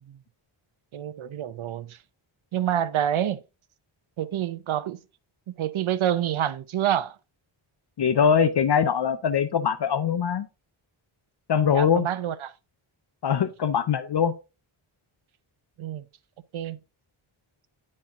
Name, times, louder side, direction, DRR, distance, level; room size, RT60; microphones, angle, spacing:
voice 1, 0.9-2.0 2.5-3.4 4.2-5.0 5.6-7.2 11.7-12.5 15.8-16.0 16.5-16.8, right 11 dB, 75° right, 0.7 m, -27 dB
voice 2, 8.0-10.5 11.5-12.1 13.2-14.3, left 7 dB, 55° left, 0.6 m, -22 dB
9.7 x 4.3 x 3.6 m
wide cardioid pair, 170°, 49 cm